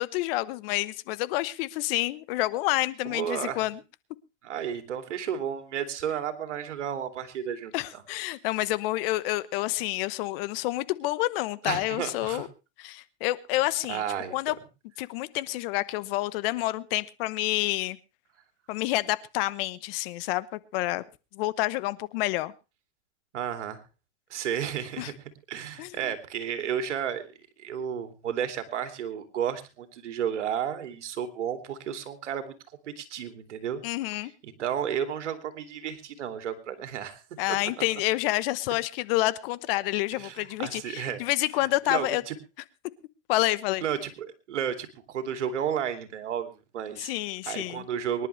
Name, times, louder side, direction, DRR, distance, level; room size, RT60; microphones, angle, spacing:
voice 1, 0.0-3.8 7.7-12.5 12.8-14.0 14.3-14.5 15.0-18.0 18.7-21.0 21.3-22.5 25.0-25.1 25.8-26.1 33.8-34.3 37.4-42.2 43.3-43.8 47.0-47.8, left 18 dB, 55° left, 17 dB, 1.1 m, -28 dB
voice 2, 3.0-3.6 4.4-8.0 11.6-12.5 13.9-14.5 23.3-23.8 24.3-25.1 25.5-27.3 27.6-32.5 33.0-33.8 34.6-37.2 37.8-37.9 40.2-41.2 41.9-42.3 43.8-47.1 47.5-48.3, right 9 dB, 85° right, 7 dB, 2.7 m, -32 dB
24.5 x 11.0 x 3.3 m, 0.30 s
hypercardioid pair, 125°, 35 cm